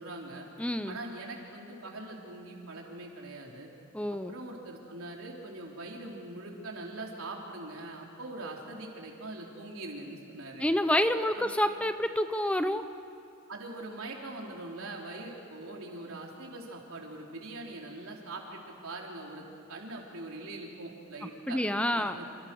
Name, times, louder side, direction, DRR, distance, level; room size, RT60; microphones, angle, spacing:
voice 1, 0.0-0.5 0.9-3.7 4.3-10.7 11.3-11.5 13.5-21.6 21.9-22.3, right 2 dB, 75° right, -1 dB, 4.2 m, -42 dB
voice 2, 0.6-1.0 3.9-4.3 10.6-12.9 21.5-22.2, left 1 dB, 5° left, 9 dB, 0.7 m, -28 dB
28.0 x 27.0 x 6.4 m, 2.5 s
head